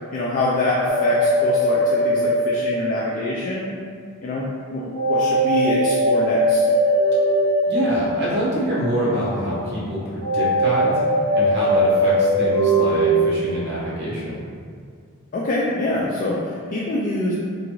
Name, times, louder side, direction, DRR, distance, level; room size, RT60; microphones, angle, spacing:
voice 1, 0.1-3.7 4.2-4.5 4.7-6.6 15.3-17.3, left 2 dB, 40° left, -6 dB, 0.3 m, -25 dB
sound 1, 0.9-3.6 4.9-8.9 10.2-13.3, right 1 dB, 75° right, 0.5 m, -20 dB
voice 2, 7.7-10.9 11.3-14.4, equal, 50° right, -7 dB, 0.8 m, -25 dB
2.5 x 2.4 x 3.0 m, 2.2 s
head